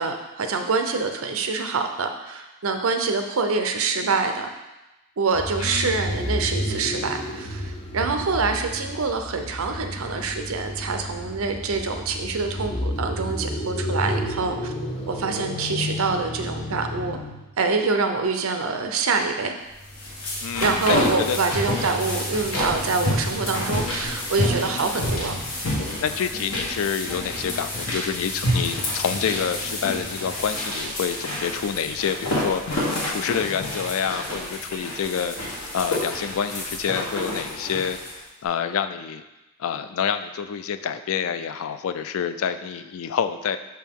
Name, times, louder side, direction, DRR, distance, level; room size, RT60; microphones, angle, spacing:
voice 1, 0.0-4.5 5.2-14.7 15.1-17.2 17.6-19.5 20.6-25.3, right 4 dB, 70° right, 5 dB, 0.6 m, -25 dB
sound 1, 5.3-17.5, left 1 dB, 25° left, 0.6 m, -31 dB
voice 2, 5.6-6.0 20.4-21.4 26.0-39.2 39.6-43.6, left 7 dB, 65° left, 10 dB, 0.3 m, -28 dB
sound 2, 19.8-38.2, left 1 dB, 85° left, 1.3 m, -28 dB
5.8 x 4.5 x 3.6 m, 1.0 s
head